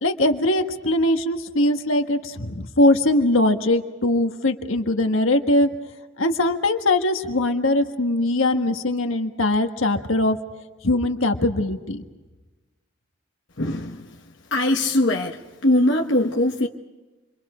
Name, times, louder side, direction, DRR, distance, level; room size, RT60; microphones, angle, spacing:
voice 1, 0.0-5.7 6.2-10.4 10.8-12.0, left 1 dB, 80° left, 1.6 m, -21 dB
voice 2, 13.6-14.0 14.5-16.7, left 1 dB, 65° left, 1.3 m, -21 dB
29.0 x 24.5 x 5.0 m
head